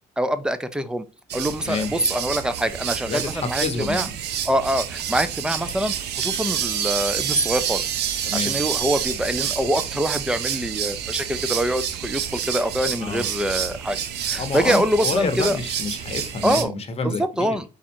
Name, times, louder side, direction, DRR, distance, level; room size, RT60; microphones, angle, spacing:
voice 1, 0.2-1.0 1.3-4.1 4.5-7.8 8.3-14.0 14.3-15.6 16.4-16.7 17.0-17.6, equal, 5° right, 0.4 m, -24 dB
sound 1, 1.3-16.6, right 9 dB, 80° right, 0.6 m, -28 dB
voice 2, 3.1-4.1 8.2-8.6 13.0-13.3 14.4-17.6, left 4 dB, 35° left, 0.9 m, -28 dB
4.2 x 2.5 x 4.3 m
cardioid pair, 105°, 17 cm